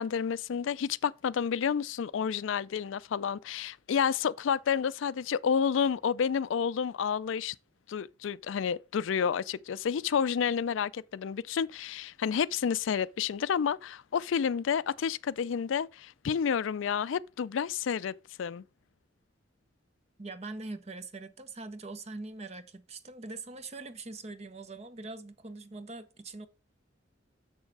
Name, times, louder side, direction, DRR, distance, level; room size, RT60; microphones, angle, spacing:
voice 1, 0.0-7.5 7.9-18.6, left 7 dB, 75° left, 0.4 m, -30 dB
voice 2, 20.2-26.5, right 3 dB, 35° right, 0.8 m, -42 dB
7.0 x 6.4 x 4.7 m
head